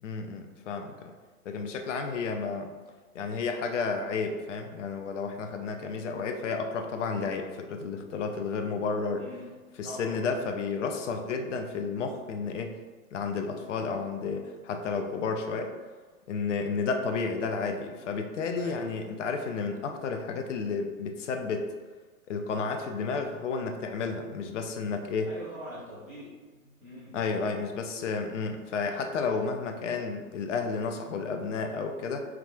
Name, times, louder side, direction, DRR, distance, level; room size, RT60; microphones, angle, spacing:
voice 1, 0.0-1.1 1.4-2.7 3.1-9.2 9.8-12.8 13.1-15.7 16.3-21.7 22.3-25.3 27.1-32.2, left 4 dB, 60° left, 5 dB, 0.5 m, -32 dB
voice 2, 9.1-9.5 9.8-10.1 18.5-18.8 25.2-27.2, equal, ahead, -20 dB, 0.3 m, -43 dB
4.6 x 2.4 x 2.2 m, 1.4 s
figure-of-eight pair, 100°, 43 cm